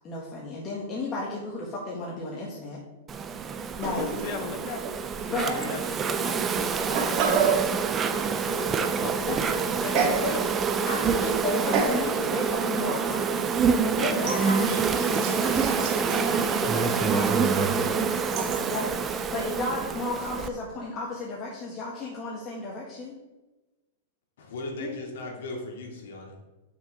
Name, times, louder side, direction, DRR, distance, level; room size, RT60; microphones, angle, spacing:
voice 1, 0.0-2.8 3.8-4.1 5.3-5.8 9.3-9.4 9.7-10.5 10.9-23.2 24.8-24.9, left 2 dB, 30° left, -4 dB, 1.7 m, -34 dB
Insect, 3.1-20.5, right 6 dB, 20° right, 0.6 m, -27 dB
sound 1, 3.8-4.5 4.8-4.9 5.8-5.9 6.6-7.7 9.9-10.3 10.7-11.1 11.7-12.1 12.6-12.8 14.2-18.6, right 5 dB, 45° right, 1.9 m, -30 dB
voice 2, 3.9-4.9 5.2-8.1 8.5-10.0, left 7 dB, 45° left, 9 dB, 0.8 m, -40 dB
Meow, 14.1-14.9, left 1 dB, 10° left, 1.6 m, -41 dB
voice 3, 24.4-26.4, left 2 dB, 75° left, 0 dB, 2.6 m, -37 dB
7.2 x 6.1 x 5.2 m, 1.1 s
hypercardioid pair, 140°, 0 cm